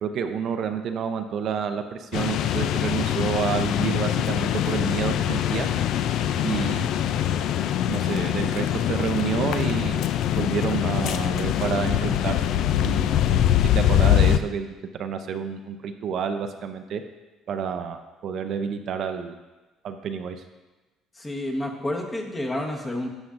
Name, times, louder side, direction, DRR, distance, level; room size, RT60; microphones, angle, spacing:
voice 1, 0.0-5.7 6.4-6.9 7.9-10.0 10.4-13.1 13.7-17.0 17.5-19.3 19.8-20.4, right 7 dB, 55° right, 6 dB, 0.5 m, -29 dB
sound 1, 2.1-14.4, left 11 dB, 65° left, 0.3 m, -23 dB
voice 2, 21.2-23.1, left 1 dB, 20° left, 1 dB, 1.1 m, -29 dB
11.0 x 7.2 x 2.5 m, 1.2 s
cardioid pair, 125°, 0 cm